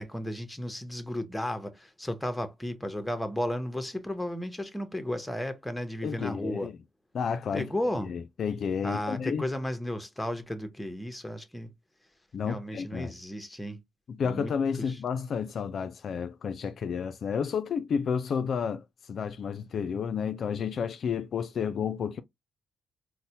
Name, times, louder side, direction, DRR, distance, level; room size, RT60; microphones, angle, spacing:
voice 1, 0.0-6.7 7.5-8.1 8.8-11.7 12.5-13.8 14.2-14.5 14.8-15.0, left 1 dB, 5° left, 0.7 m, -34 dB
voice 2, 6.0-6.7 7.1-7.7 8.1-9.5 12.3-13.1 14.1-22.2, left 6 dB, 55° left, 0.3 m, -31 dB
4.0 x 2.0 x 2.7 m
cardioid pair, 110°, 0 cm